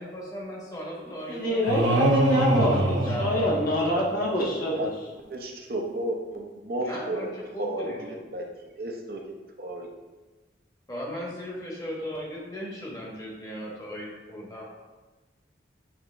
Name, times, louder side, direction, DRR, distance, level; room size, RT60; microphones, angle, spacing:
voice 1, 0.0-3.6 6.8-7.3 7.5-8.2 10.9-14.7, equal, 20° left, -3 dB, 1.3 m, -37 dB
voice 2, 1.0-4.9, equal, 50° left, -4 dB, 1.4 m, -26 dB
sound 1, 1.7-4.2, right 1 dB, 85° right, 0.8 m, -24 dB
voice 3, 5.3-7.3 7.6-8.4 8.8-9.2 9.6-9.9, right 1 dB, 50° right, 1 dB, 0.8 m, -32 dB
8.0 x 3.6 x 3.4 m, 1.2 s
head